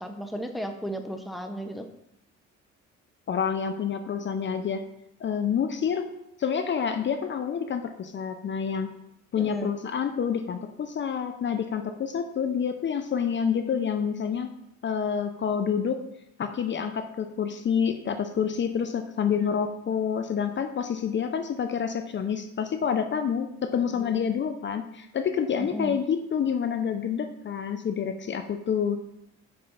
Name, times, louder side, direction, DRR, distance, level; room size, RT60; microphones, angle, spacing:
voice 1, 0.0-1.8 9.4-9.7 19.4-19.6 23.9-24.2 25.6-26.0, equal, ahead, 5 dB, 0.8 m, -35 dB
voice 2, 3.3-4.8 5.2-6.0 6.4-8.9 9.3-14.5 14.8-16.0 16.4-29.0, left 7 dB, 40° left, 7 dB, 0.6 m, -28 dB
5.5 x 5.0 x 5.8 m, 0.81 s
cardioid pair, 105°, 29 cm